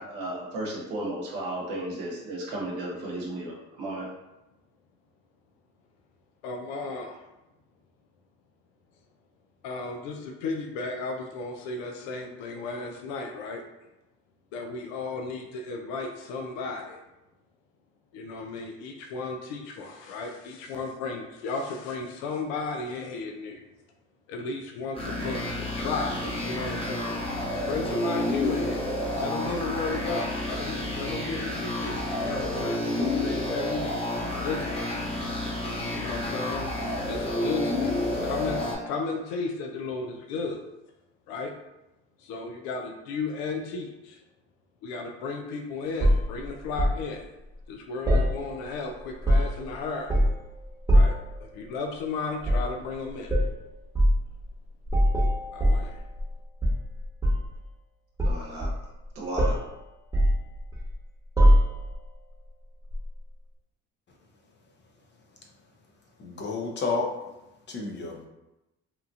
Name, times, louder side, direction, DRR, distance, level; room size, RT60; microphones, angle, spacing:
voice 1, 0.0-4.1 58.2-58.7 59.1-59.6, right 1 dB, 80° right, -4 dB, 0.9 m, -34 dB
voice 2, 6.4-7.2 9.6-13.6 14.5-17.0 18.1-23.6 24.3-27.2 27.7-34.9 35.9-36.7 37.1-40.6 41.3-41.5 42.2-44.2 44.8-47.2 47.7-50.2 50.9-51.1 51.4-53.4 55.5-56.0, left 3 dB, 80° left, 2 dB, 0.5 m, -34 dB
sound 1, 24.9-38.7, left 1 dB, 15° left, 1.1 m, -30 dB
sound 2, 46.0-47.0 48.1-48.8 49.1-49.7 50.1-50.5 50.9-51.3 52.4-52.7 53.3-53.5 53.9-54.2 54.9-56.3 56.6-57.5 58.2-59.0 59.4-59.7 60.1-60.9 61.4-62.0 62.9-63.1, equal, 10° right, 1.0 m, -22 dB
voice 3, 66.2-67.1 67.7-68.3, left 3 dB, 35° left, 0 dB, 0.6 m, -30 dB
2.9 x 2.4 x 2.4 m, 0.95 s
supercardioid pair, 70°, 33 cm